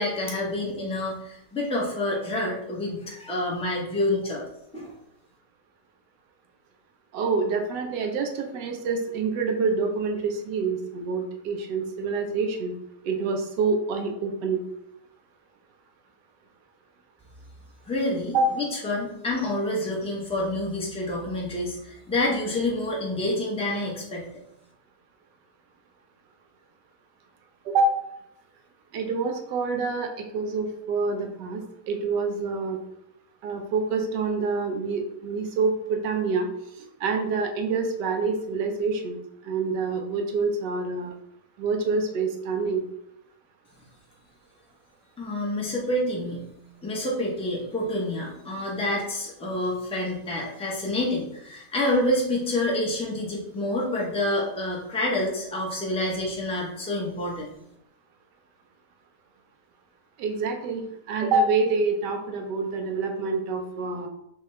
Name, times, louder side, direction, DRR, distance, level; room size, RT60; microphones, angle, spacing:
voice 1, 0.0-4.5 4.7-4.9 17.9-24.2 45.2-46.5 46.8-57.5, left 1 dB, 5° left, -4 dB, 0.7 m, -28 dB
voice 2, 7.1-12.7 13.0-14.6 18.3-18.5 27.7-27.9 28.9-32.8 33.4-36.5 37.0-39.2 39.4-41.1 41.6-42.8 60.2-60.8 61.1-64.1, right 4 dB, 90° right, 3 dB, 1.3 m, -26 dB
6.5 x 2.4 x 3.2 m, 0.80 s
omnidirectional pair, 1.8 m